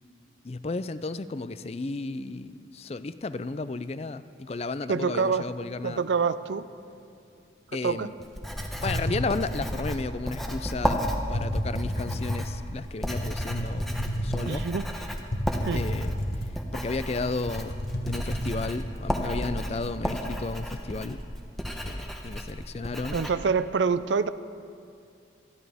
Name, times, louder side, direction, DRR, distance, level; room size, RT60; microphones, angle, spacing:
voice 1, 0.4-6.0 7.7-8.1 8.8-14.7 15.7-16.1 16.7-17.7 18.0-21.2 21.8-23.2, left 3 dB, 35° left, 13 dB, 0.4 m, -33 dB
voice 2, 4.9-5.5 5.8-6.7 7.8-8.1 14.5-14.9 15.7-15.8 23.1-24.3, right 5 dB, 75° right, 14 dB, 0.4 m, -26 dB
Writing, 8.2-23.3, equal, ahead, 0.9 m, -33 dB
sound 1, 8.6-10.0 10.8-11.0 11.3-12.5 13.2-14.8 15.3-16.7 17.1-17.2 17.5-18.7, equal, 65° left, 1.3 m, -31 dB
26.0 x 11.0 x 3.5 m, 2.4 s
head